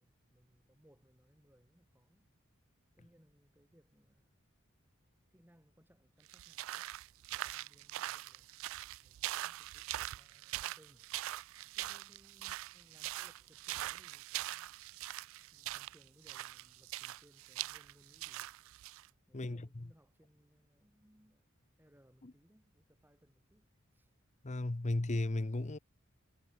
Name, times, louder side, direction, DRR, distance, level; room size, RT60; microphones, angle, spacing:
voice 1, 0.0-2.3 2.9-4.5 5.3-6.9 7.3-8.6 9.0-9.9 10.2-11.1 11.7-14.8 15.5-18.5 19.3-24.1, equal, 10° right, 6.2 m, -67 dB
sound 1, 6.3-19.1, right 15 dB, 65° right, 0.3 m, -42 dB
voice 2, 24.4-25.8, left 2 dB, 35° left, 0.8 m, -35 dB
head